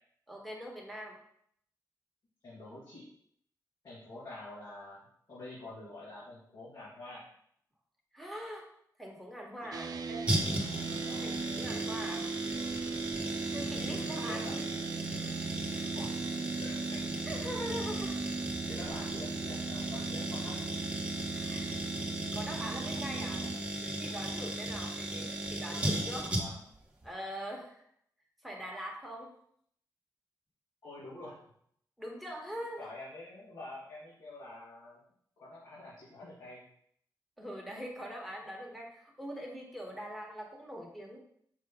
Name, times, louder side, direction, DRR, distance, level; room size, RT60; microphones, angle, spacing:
voice 1, 0.3-1.2 8.1-8.7 9.0-10.2 11.2-12.3 13.5-14.6 17.2-18.2 21.3-21.8 22.3-23.4 23.8-26.3 27.0-27.8 28.4-29.3 32.0-32.9 37.4-41.2, equal, ahead, -1 dB, 1.5 m, -42 dB
voice 2, 2.4-3.0 3.8-5.0 5.3-7.3 9.6-9.7 11.0-11.3 13.8-14.6 15.9-16.2 16.6-17.2 18.7-20.7 23.1-23.8 26.3-26.6 30.8-31.4 32.5-35.0 35.4-36.6, left 2 dB, 65° left, -10 dB, 2.4 m, -47 dB
sound 1, 9.7-23.6, right 5 dB, 60° right, 0.5 m, -39 dB
sound 2, 10.3-26.8 27.0-27.1, right 1 dB, 15° right, 1.3 m, -36 dB
6.1 x 4.3 x 3.7 m, 0.68 s
wide cardioid pair, 100°, 7 cm